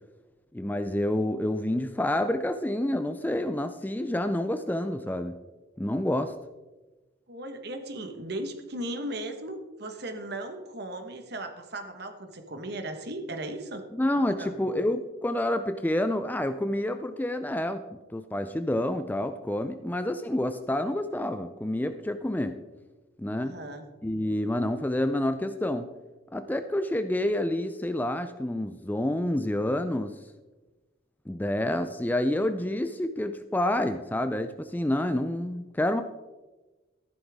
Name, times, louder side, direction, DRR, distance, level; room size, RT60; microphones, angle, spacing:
voice 1, 0.5-5.4 5.8-6.3 13.9-17.8 18.1-22.6 23.2-23.6 24.0-25.9 26.3-30.1 31.3-36.0, left 1 dB, 10° left, 9 dB, 0.4 m, -28 dB
voice 2, 7.3-13.8 14.3-14.6 23.4-23.8, right 1 dB, 55° right, 6 dB, 1.4 m, -37 dB
14.0 x 11.0 x 3.6 m, 1.2 s
head